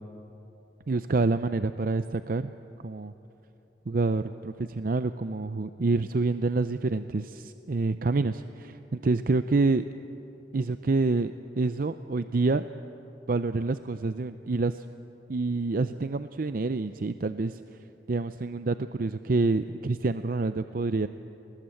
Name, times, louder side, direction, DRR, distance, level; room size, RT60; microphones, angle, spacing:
voice 1, 0.9-2.5 2.8-3.1 3.9-9.8 10.5-12.7 13.3-14.8 15.3-17.6 18.1-21.1, right 3 dB, 50° right, 11 dB, 0.5 m, -27 dB
29.0 x 19.5 x 7.9 m, 3.0 s
head